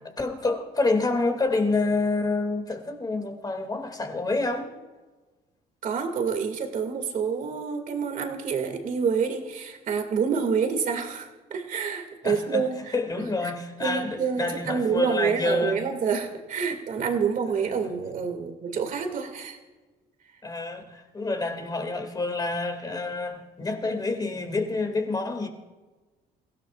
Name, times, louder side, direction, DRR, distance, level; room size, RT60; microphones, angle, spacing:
voice 1, 0.2-4.7 12.2-12.7 12.9-15.8 20.4-25.5, left 3 dB, 25° left, 4 dB, 2.4 m, -27 dB
voice 2, 5.8-12.9 13.4-13.5 13.8-19.6, right 6 dB, 50° right, 5 dB, 2.3 m, -28 dB
28.0 x 16.5 x 2.5 m, 1.3 s
cardioid pair, 110°, 17 cm